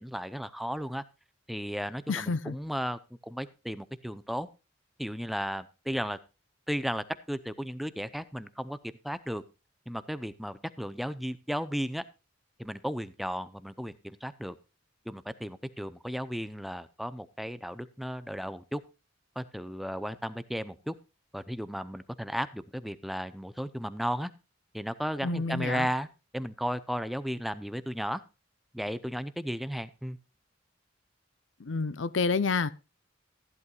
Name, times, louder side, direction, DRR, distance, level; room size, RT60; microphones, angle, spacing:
voice 1, 0.0-1.0 1.5-4.5 5.0-6.2 6.7-8.8 9.0-9.4 9.9-12.0 12.6-14.6 15.1-18.8 19.4-20.9 21.3-24.3 24.7-26.1 26.3-28.2 28.7-30.2, equal, ahead, 0.6 m, -34 dB
voice 2, 2.1-2.6 25.2-25.9 31.6-32.7, left 4 dB, 75° left, 0.7 m, -29 dB
15.0 x 11.0 x 2.4 m
head